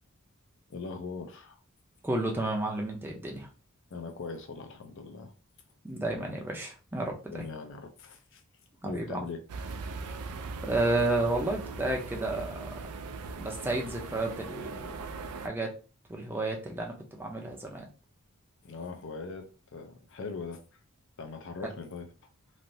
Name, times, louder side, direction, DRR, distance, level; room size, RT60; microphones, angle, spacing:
voice 1, 0.7-1.6 3.9-5.3 7.3-8.4 8.8-9.4 18.6-20.6 21.2-22.1, left 4 dB, 55° left, 0.5 m, -40 dB
voice 2, 2.0-3.5 5.8-7.5 8.8-9.2 10.6-12.7 13.4-15.0 15.4-15.7 16.1-17.9, right 2 dB, 10° right, 0.6 m, -31 dB
sound 1, 9.5-15.5, right 4 dB, 80° right, 0.4 m, -40 dB
3.2 x 2.6 x 2.6 m
head